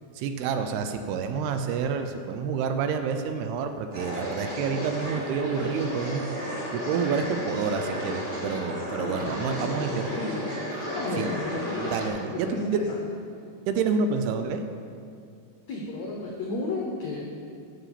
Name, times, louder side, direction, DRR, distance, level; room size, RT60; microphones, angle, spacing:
voice 1, 0.2-10.1 11.2-11.3 11.8-12.8 13.7-14.6, right 6 dB, 80° right, 7 dB, 2.6 m, -28 dB
sound 1, 3.9-12.1, equal, 15° right, 2.2 m, -33 dB
voice 2, 9.0-10.5 10.8-12.0 12.3-13.0 15.7-17.2, left 2 dB, 85° left, -2 dB, 1.5 m, -33 dB
9.2 x 7.6 x 6.9 m, 2.3 s
omnidirectional pair, 4.8 m